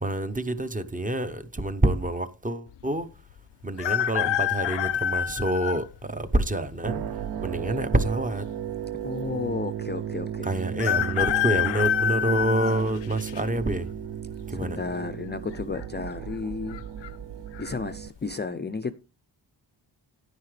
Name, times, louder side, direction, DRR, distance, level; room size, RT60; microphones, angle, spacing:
voice 1, 0.0-3.1 3.6-7.0 7.4-8.4 10.4-13.9 14.5-14.8, right 1 dB, 20° right, 0.7 m, -27 dB
sound 1, 3.8-5.8 6.5-6.6 7.7-8.3 8.6-8.7 8.9-9.0 10.8-13.4 13.9-14.3 15.5-15.8 16.1-16.2 16.7-17.1 17.5-17.7, left 11 dB, 80° left, 0.5 m, -27 dB
sound 2, 6.8-18.1, right 9 dB, 60° right, 0.5 m, -35 dB
voice 2, 9.0-10.5 14.5-16.8 17.6-18.9, left 4 dB, 25° left, 0.4 m, -33 dB
10.5 x 9.5 x 3.2 m
wide cardioid pair, 140°, 43 cm